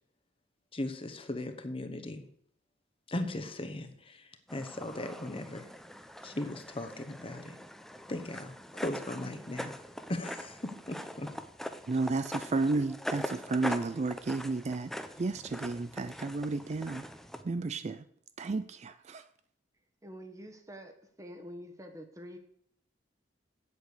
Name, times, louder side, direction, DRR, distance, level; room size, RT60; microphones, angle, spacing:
voice 1, 0.7-2.3 3.1-5.7 6.2-7.5 8.1-9.8 10.1-10.6 10.9-11.3, left 1 dB, 30° left, 1.1 m, -38 dB
sound 1, 4.5-17.4, equal, ahead, 0.6 m, -42 dB
voice 2, 11.9-14.9 15.2-17.0 17.4-18.0 18.4-19.3, right 3 dB, 35° right, 0.4 m, -32 dB
voice 3, 20.0-22.4, equal, 15° right, 1.3 m, -47 dB
8.8 x 8.2 x 6.7 m
head